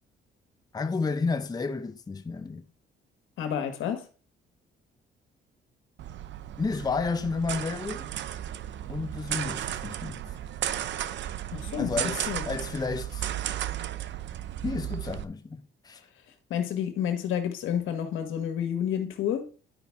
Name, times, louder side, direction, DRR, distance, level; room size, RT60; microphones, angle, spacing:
voice 1, 0.7-2.6 6.6-8.1 8.9-10.2 11.8-13.3 14.6-16.0, left 4 dB, 20° left, 0.6 m, -31 dB
voice 2, 3.4-4.1 11.5-12.0 12.3-12.4 16.5-19.5, left 9 dB, 80° left, 1.5 m, -30 dB
sound 1, 6.0-15.2, right 11 dB, 65° right, 0.6 m, -34 dB
11.0 x 5.2 x 3.5 m
cardioid pair, 90°, 20 cm